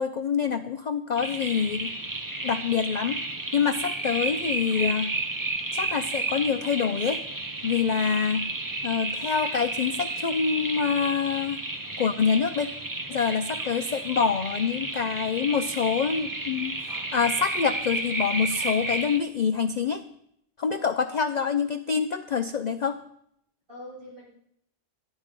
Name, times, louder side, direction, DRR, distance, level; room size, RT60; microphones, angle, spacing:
voice 1, 0.0-1.9 2.4-3.2 3.5-5.1 5.7-7.2 7.6-8.5 8.8-11.6 12.0-12.7 13.1-20.0 20.6-23.0, left 6 dB, 50° left, 9 dB, 0.5 m, -26 dB
sound 1, 1.2-19.2, right 2 dB, 20° right, 0.8 m, -32 dB
voice 2, 20.7-21.1 23.7-24.3, left 1 dB, 50° right, -7 dB, 7.6 m, -44 dB
13.5 x 11.0 x 5.2 m, 0.73 s
omnidirectional pair, 1.2 m